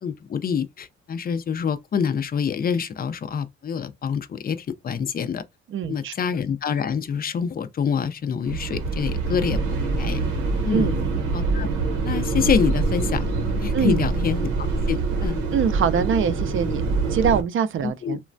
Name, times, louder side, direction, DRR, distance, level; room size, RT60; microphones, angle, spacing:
voice 1, 0.0-5.4 5.9-10.3 10.6-10.9 11.3-11.7 12.0-15.4 17.8-18.2, left 7 dB, 30° left, 0.4 m, -26 dB
voice 2, 5.7-6.1 10.7-11.1 13.7-14.1 15.5-18.2, right 7 dB, 45° right, 0.5 m, -24 dB
sound 1, 8.4-17.4, right 3 dB, 85° right, 0.8 m, -25 dB
3.0 x 2.2 x 2.5 m
cardioid pair, 90°, 30 cm